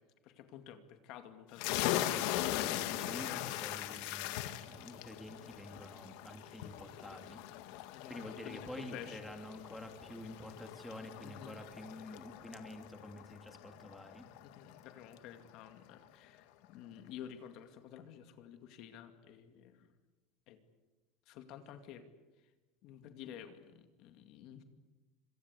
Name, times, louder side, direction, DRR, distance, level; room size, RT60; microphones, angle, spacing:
voice 1, 0.2-3.4 6.6-6.7 7.9-9.2 11.2-11.6 14.4-20.0 20.5-20.6 21.3-22.1 22.4-22.5 22.8-24.6, left 10 dB, 50° left, 8 dB, 2.3 m, -51 dB
sound 1, 1.6-14.9, left 13 dB, 65° left, 1.9 m, -40 dB
voice 2, 2.9-7.4 8.1-14.2, left 1 dB, ahead, 4 dB, 2.8 m, -48 dB
26.0 x 24.5 x 8.3 m, 1.2 s
cardioid pair, 160°, 0 cm